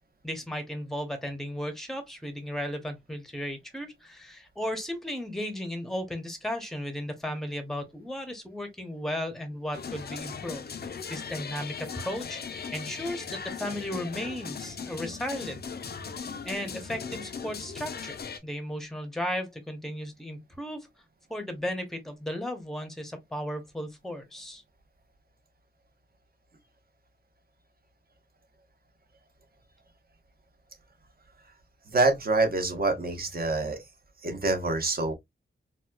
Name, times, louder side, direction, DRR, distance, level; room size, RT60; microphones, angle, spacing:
voice 1, 0.2-15.6 16.1-18.2 18.4-20.9 21.3-24.6, equal, ahead, 0.8 m, -35 dB
sound 1, 9.7-18.4, left 6 dB, 50° left, 0.5 m, -38 dB
voice 2, 31.9-33.8 34.2-35.1, right 3 dB, 45° right, 1.0 m, -26 dB
4.2 x 2.3 x 2.2 m
wide cardioid pair, 145°, 20 cm